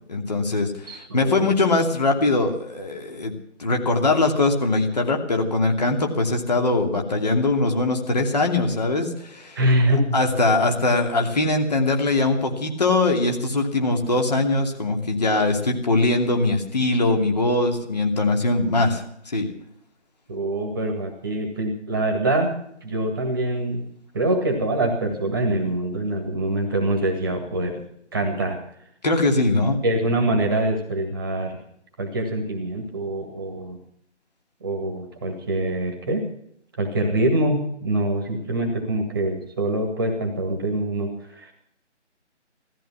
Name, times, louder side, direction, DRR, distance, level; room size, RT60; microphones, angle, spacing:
voice 1, 0.1-3.3 3.6-9.6 10.1-19.5 29.0-29.8, left 2 dB, 35° left, 3 dB, 2.9 m, -21 dB
voice 2, 0.9-1.5 9.6-10.0 20.3-22.5 22.8-23.8 24.1-27.7 28.1-28.6 29.8-31.6 32.0-33.8 34.6-36.2 36.8-41.5, right 1 dB, 20° right, 3 dB, 1.9 m, -24 dB
17.0 x 14.0 x 6.0 m, 0.69 s
figure-of-eight pair, 160°, 36 cm